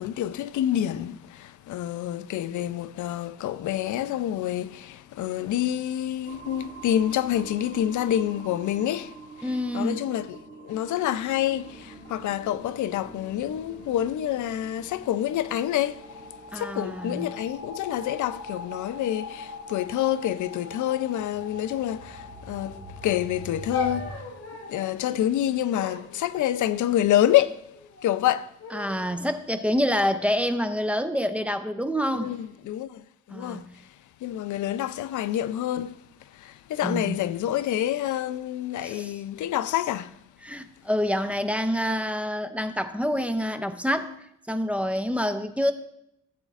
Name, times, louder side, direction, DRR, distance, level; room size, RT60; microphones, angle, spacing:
voice 1, 0.0-24.3 24.7-27.7 28.0-28.5 32.1-33.9 34.2-40.2, left 12 dB, 90° left, 0.5 m, -27 dB
sound 1, 6.3-24.2, equal, 30° right, 1.5 m, -43 dB
voice 2, 9.4-10.0 16.5-17.2 28.7-32.3 33.3-33.7 36.8-37.2 38.8-39.1 40.4-44.1 44.5-45.7, equal, 5° right, 0.5 m, -27 dB
sound 2, 23.7-24.9 25.7-27.0 27.7-28.2 28.6-29.2 29.8-31.1 31.9-32.4, left 3 dB, 55° left, 2.1 m, -38 dB
16.0 x 8.0 x 2.4 m
wide cardioid pair, 140°, 29 cm